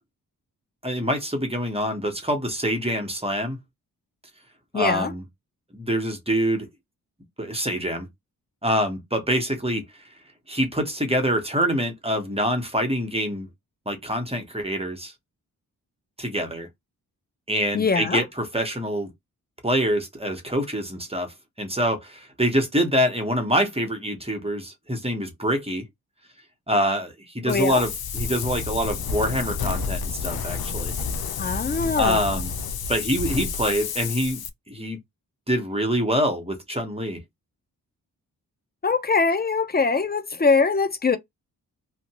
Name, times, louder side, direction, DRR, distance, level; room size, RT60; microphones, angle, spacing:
voice 1, 0.8-3.6 4.7-5.2 5.7-6.7 7.4-8.1 8.6-9.8 10.5-13.5 13.9-15.1 16.2-16.7 17.5-19.1 19.6-25.8 26.7-30.9 32.0-32.5 32.9-34.4 34.7-35.0 35.5-37.2, equal, 15° right, 1.2 m, -25 dB
voice 2, 4.7-5.1 17.7-18.2 27.5-27.8 31.4-32.3 38.8-41.2, left 4 dB, 25° left, 0.8 m, -22 dB
Wind, 27.5-34.5, left 5 dB, 65° left, 0.7 m, -30 dB
2.8 x 2.4 x 3.0 m
supercardioid pair, 45°, 40 cm